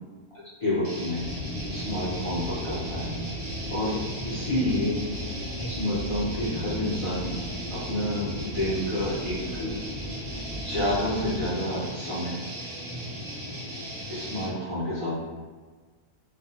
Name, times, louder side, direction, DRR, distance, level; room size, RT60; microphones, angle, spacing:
voice 1, 0.3-1.2 1.7-3.1 3.7-4.0 4.2-5.0 5.5-7.3 7.7-9.7 10.6-12.4 14.1-15.2, left 1 dB, 45° left, -10 dB, 0.4 m, -29 dB
sound 1, 0.8-14.6, equal, 70° right, 0.3 m, -37 dB
sound 2, 1.2-11.5, equal, 5° left, 0.8 m, -36 dB
2.4 x 2.1 x 2.7 m, 1.4 s
omnidirectional pair, 1.5 m